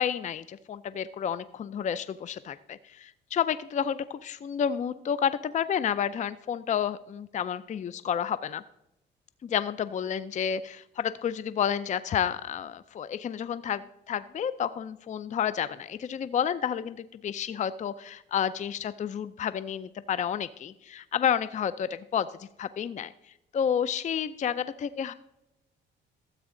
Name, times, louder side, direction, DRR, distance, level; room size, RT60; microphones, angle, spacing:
voice 1, 0.0-8.6 9.4-23.1 23.5-25.1, left 8 dB, 40° left, 15 dB, 0.4 m, -30 dB
13.0 x 8.1 x 3.8 m, 0.88 s
cardioid pair, 90°, 20 cm